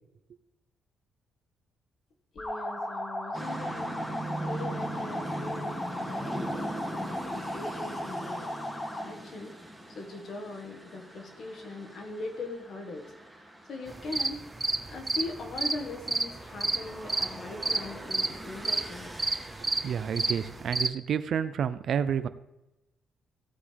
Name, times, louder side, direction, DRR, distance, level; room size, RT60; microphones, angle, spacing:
voice 1, 2.3-4.0 4.4-8.5 9.0-9.6 9.9-13.4 13.7-14.5 14.9-19.2, left 2 dB, 60° left, 3 dB, 1.8 m, -41 dB
sound 1, 2.4-9.2, left 1 dB, 20° left, 1.7 m, -36 dB
sound 2, 3.3-20.6, right 1 dB, 5° left, 2.5 m, -41 dB
sound 3, 13.9-20.9, right 3 dB, 20° right, 0.7 m, -30 dB
voice 2, 19.8-22.3, right 8 dB, 60° right, 13 dB, 0.6 m, -29 dB
15.5 x 8.6 x 3.5 m, 0.96 s
cardioid pair, 90°, 0 cm